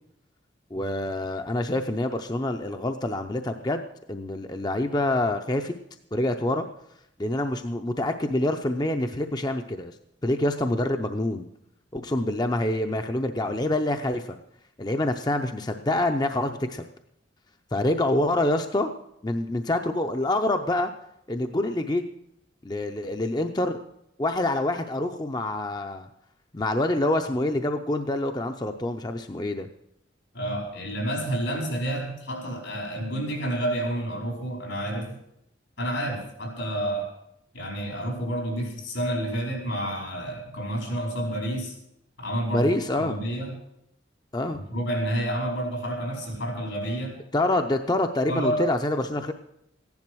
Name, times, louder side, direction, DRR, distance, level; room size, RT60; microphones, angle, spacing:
voice 1, 0.7-3.8 4.1-5.7 6.1-6.7 7.2-9.9 10.2-11.5 11.9-14.4 14.8-16.8 17.7-18.9 19.2-20.9 21.3-22.0 22.6-23.8 24.2-26.1 26.5-29.7 42.5-43.2 44.3-44.7 47.3-49.3, left 1 dB, 20° left, 6 dB, 0.6 m, -26 dB
voice 2, 30.3-35.1 35.8-37.1 37.5-41.7 42.2-42.7 43.0-43.5 44.7-47.1 48.3-48.6, right 1 dB, 85° left, 0 dB, 4.9 m, -29 dB
15.0 x 10.5 x 6.2 m, 0.79 s
head